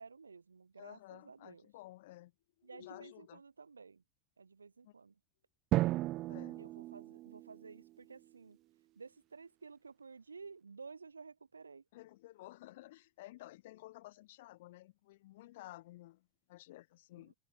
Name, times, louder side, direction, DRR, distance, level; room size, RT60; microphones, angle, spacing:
voice 1, 0.0-1.7 2.6-4.0 4.4-5.2 6.6-8.6 9.0-11.8 17.2-17.3, right 5 dB, 80° right, 3.8 m, -53 dB
voice 2, 0.8-2.3 2.6-3.4 4.8-4.9 6.3-6.6 11.9-17.3, left 17 dB, 60° left, 1.6 m, -53 dB
Drum, 5.7-8.2, right 17 dB, 40° right, 0.4 m, -35 dB
figure-of-eight pair, 80°, 0 cm